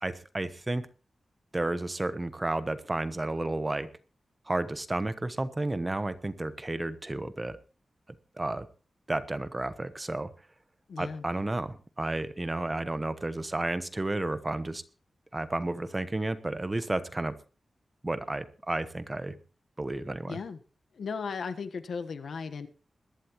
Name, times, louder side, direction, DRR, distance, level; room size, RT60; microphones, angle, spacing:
voice 1, 0.0-0.9 1.5-3.9 4.5-7.6 8.4-8.7 9.1-10.3 11.0-14.8 15.3-17.3 18.0-19.4 19.8-20.4, right 2 dB, 20° right, 12 dB, 1.0 m, -32 dB
voice 2, 10.9-11.2 20.3-20.6 20.9-22.7, left 5 dB, 90° left, 9 dB, 1.3 m, -36 dB
21.0 x 11.5 x 3.1 m, 0.35 s
wide cardioid pair, 145°, 0 cm